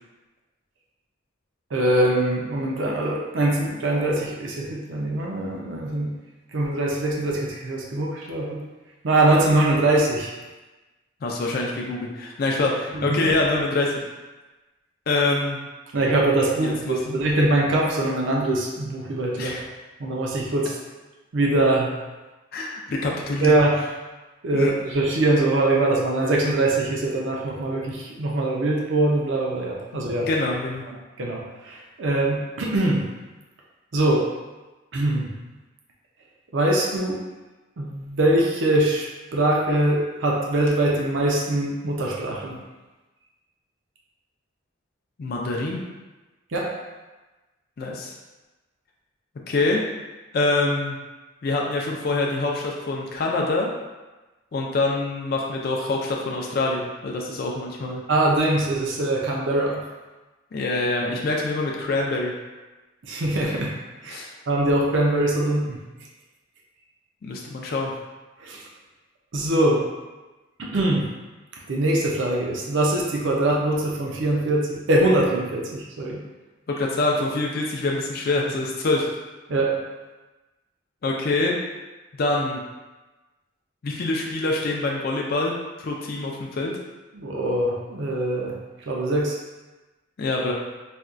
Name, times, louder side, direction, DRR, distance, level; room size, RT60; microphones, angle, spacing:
voice 1, 1.7-6.1 6.5-8.6 9.0-10.3 12.9-13.3 15.9-19.5 20.0-20.8 21.3-21.9 23.4-23.7 24.4-30.3 31.2-33.0 33.9-34.2 34.9-35.3 36.5-37.2 37.8-39.0 39.3-42.6 46.5-46.7 58.1-59.8 63.1-63.7 64.0-64.2 64.5-65.8 68.4-68.6 69.3-69.8 70.6-71.1 71.7-76.2 79.5-79.7 87.1-88.5 88.9-89.4, right 1 dB, 65° right, -2 dB, 0.5 m, -22 dB
voice 2, 11.2-14.0 15.1-15.6 16.6-17.2 19.4-19.6 22.5-23.6 24.5-24.7 30.3-30.9 45.2-45.8 47.8-48.1 49.5-49.8 50.3-51.0 51.4-53.7 54.5-58.0 60.5-62.3 64.1-64.3 67.2-67.9 76.7-79.1 81.0-81.6 82.2-82.6 83.8-86.7 90.2-90.5, left 2 dB, 50° left, -1 dB, 0.3 m, -25 dB
4.2 x 2.2 x 2.4 m, 1.2 s
head